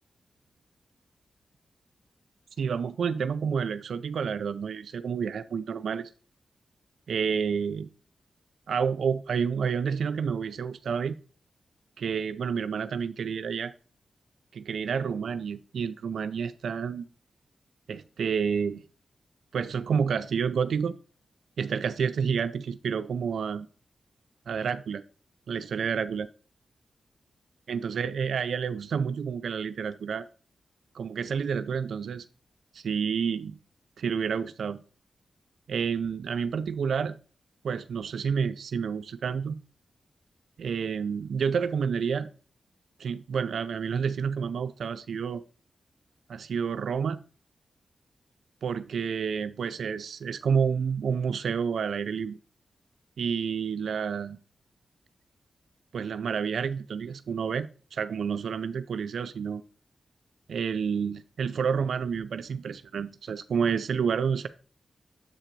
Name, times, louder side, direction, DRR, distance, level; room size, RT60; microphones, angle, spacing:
voice 1, 2.6-6.1 7.1-7.9 8.7-11.2 12.0-13.7 14.5-17.1 17.9-18.8 19.5-20.9 21.6-23.7 24.5-25.0 25.5-26.3 27.7-30.3 30.9-32.2 32.7-33.6 34.0-34.8 35.7-37.2 37.6-39.6 40.6-42.3 43.0-45.4 46.3-47.2 48.6-52.4 53.2-54.4 55.9-59.6 60.5-64.5, right 6 dB, 85° right, 0.3 m, -29 dB
7.4 x 3.8 x 4.5 m
cardioid pair, 60°, 0 cm